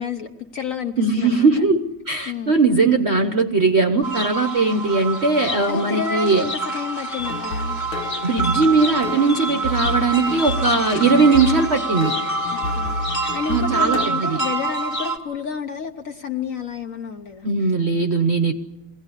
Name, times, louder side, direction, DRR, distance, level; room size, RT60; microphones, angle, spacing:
voice 1, 0.0-1.6 2.3-2.5 5.7-7.8 12.5-17.5, left 6 dB, 50° left, 5 dB, 1.1 m, -30 dB
voice 2, 1.0-1.8 2.1-6.5 8.2-12.1 13.5-14.4 17.4-18.5, right 3 dB, 45° right, 6 dB, 0.9 m, -19 dB
sound 1, 4.0-15.2, right 2 dB, 25° left, 1.9 m, -27 dB
sound 2, 7.2-14.1, left 1 dB, 90° left, 1.9 m, -30 dB
22.0 x 17.0 x 9.8 m, 1.0 s
omnidirectional pair, 2.2 m